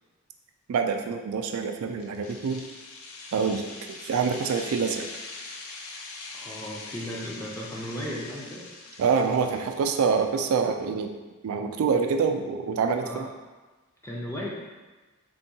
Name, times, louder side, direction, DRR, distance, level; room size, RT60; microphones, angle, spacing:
voice 1, 0.7-2.6 3.3-3.7 4.0-5.1 9.0-11.1 11.4-13.1, right 5 dB, 75° right, 6 dB, 0.3 m, -26 dB
sound 1, 2.0-9.9, left 3 dB, 75° left, 0.4 m, -42 dB
voice 2, 6.3-8.6 13.0-13.3 14.0-14.5, equal, 10° left, -4 dB, 0.4 m, -35 dB
3.5 x 2.2 x 2.7 m, 1.2 s
head